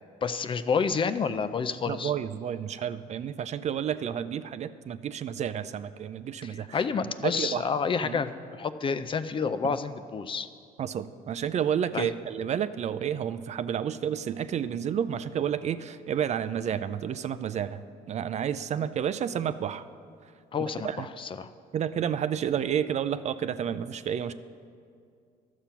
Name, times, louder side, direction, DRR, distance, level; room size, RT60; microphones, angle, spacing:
voice 1, 0.2-2.1 6.4-10.5 11.9-12.1 18.8-18.9 20.5-21.5, left 5 dB, 30° left, 12 dB, 0.4 m, -29 dB
voice 2, 1.9-6.8 7.2-7.6 8.0-8.2 9.6-9.7 10.8-19.8 20.6-21.1 21.7-24.3, right 9 dB, 40° right, 13 dB, 0.4 m, -30 dB
12.0 x 7.4 x 5.7 m, 2.3 s
cardioid pair, 110°, 17 cm